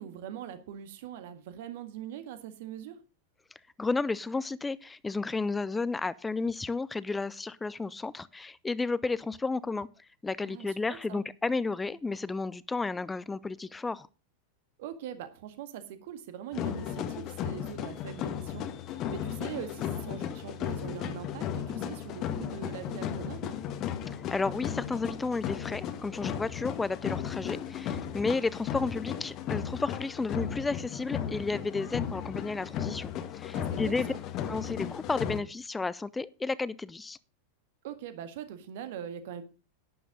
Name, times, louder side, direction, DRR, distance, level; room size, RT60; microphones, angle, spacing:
voice 1, 0.0-3.0 10.4-11.2 14.8-23.6 33.5-34.2 37.8-39.4, right 9 dB, 50° right, 10 dB, 1.7 m, -42 dB
voice 2, 3.8-9.9 10.2-14.1 24.3-34.1 34.5-37.2, left 3 dB, 10° left, 20 dB, 0.6 m, -32 dB
sound 1, 16.5-35.4, left 9 dB, 35° left, 1.4 m, -35 dB
11.5 x 10.0 x 3.8 m, 0.31 s
figure-of-eight pair, 90°, 0 cm